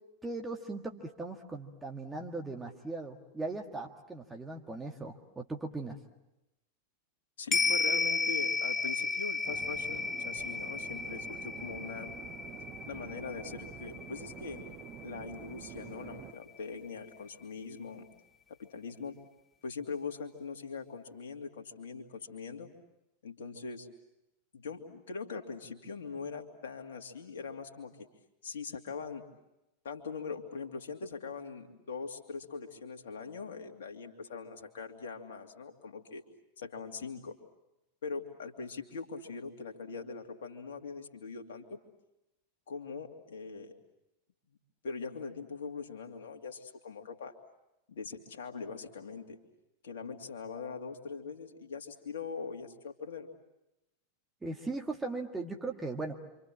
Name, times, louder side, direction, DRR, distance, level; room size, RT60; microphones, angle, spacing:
voice 1, 0.2-6.0 54.4-56.1, right 3 dB, 10° right, 1 dB, 1.8 m, -38 dB
voice 2, 7.4-12.1 12.9-14.7 15.0-18.0 18.5-19.2 19.6-22.7 23.2-23.9 24.5-28.1 28.4-29.3 29.8-36.2 36.6-37.4 38.0-41.8 42.7-43.7 44.8-47.4 47.9-49.4 49.8-53.3, left 5 dB, 60° left, 4 dB, 2.7 m, -42 dB
sound 1, 7.5-16.1 16.4-16.5, left 4 dB, 15° left, 1.0 m, -34 dB
sound 2, 9.4-16.3, right 11 dB, 35° right, 1.2 m, -48 dB
28.0 x 26.0 x 7.6 m, 0.94 s
figure-of-eight pair, 90°, 0 cm